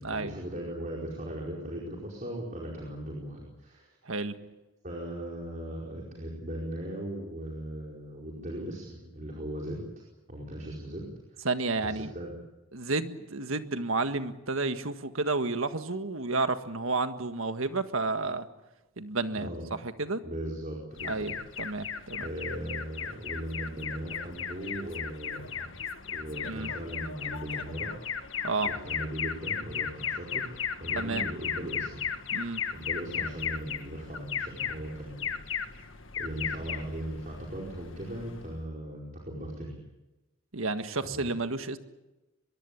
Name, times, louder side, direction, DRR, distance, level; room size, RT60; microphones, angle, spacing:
voice 1, 0.0-3.9 4.8-9.9 10.3-11.5 11.8-12.3 19.3-19.7 20.2-21.3 22.1-25.8 26.1-28.1 28.6-32.0 32.7-35.2 35.5-35.8 36.2-39.8 41.0-41.3, right 1 dB, 35° right, -3 dB, 4.9 m, -38 dB
voice 2, 4.0-4.4 11.4-12.1 12.7-18.5 19.0-20.2 21.0-22.2 26.4-26.7 28.4-28.7 30.9-31.3 32.3-32.6 40.5-41.8, right 3 dB, 75° right, 9 dB, 1.7 m, -31 dB
Alarm, 21.0-38.6, left 7 dB, 65° left, 1.7 m, -36 dB
23.5 x 22.5 x 8.6 m, 1.0 s
head